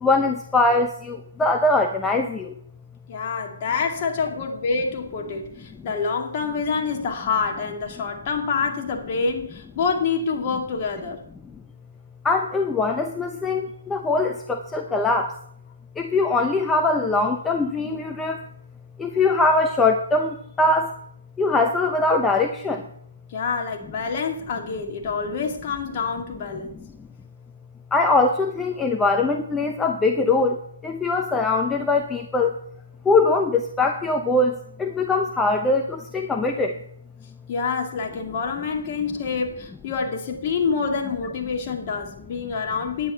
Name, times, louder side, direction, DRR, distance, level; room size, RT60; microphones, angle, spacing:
voice 1, 0.0-2.5 12.2-15.3 16.0-18.4 19.0-20.9 21.4-22.9 26.7-26.9 27.9-32.6 33.0-36.8, left 3 dB, 10° left, 3 dB, 0.7 m, -22 dB
voice 2, 3.1-11.2 23.3-26.8 37.5-43.1, left 5 dB, 35° left, 1 dB, 2.3 m, -27 dB
10.0 x 10.0 x 5.7 m, 0.67 s
hypercardioid pair, 150°, 0 cm